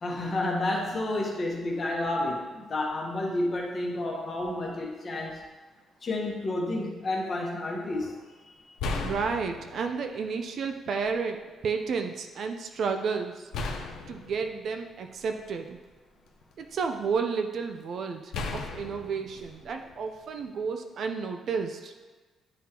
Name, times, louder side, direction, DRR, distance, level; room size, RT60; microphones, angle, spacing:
voice 1, 0.0-5.4 6.0-8.1, left 2 dB, 30° left, -2 dB, 1.0 m, -30 dB
sound 1, 8.0-8.2 8.8-10.1 11.0-11.1 13.5-15.7 16.3-17.1 18.3-20.4, left 3 dB, 80° left, 0.6 m, -36 dB
voice 2, 9.0-13.5 14.1-15.8 16.6-21.9, right 5 dB, 45° right, 5 dB, 0.4 m, -31 dB
10.0 x 3.7 x 2.9 m, 1.3 s
cardioid pair, 180°, 0 cm